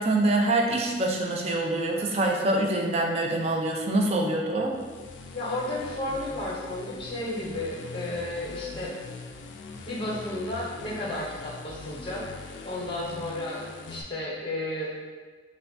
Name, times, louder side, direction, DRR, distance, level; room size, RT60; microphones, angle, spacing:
voice 1, 0.0-4.8, right 2 dB, 35° right, 1 dB, 0.4 m, -25 dB
sound 1, 4.6-14.0, left 3 dB, 75° left, 0.3 m, -42 dB
voice 2, 5.3-8.9 9.9-12.2 12.6-14.9, left 1 dB, 25° left, -4 dB, 0.7 m, -33 dB
5.5 x 2.2 x 2.6 m, 1.4 s
head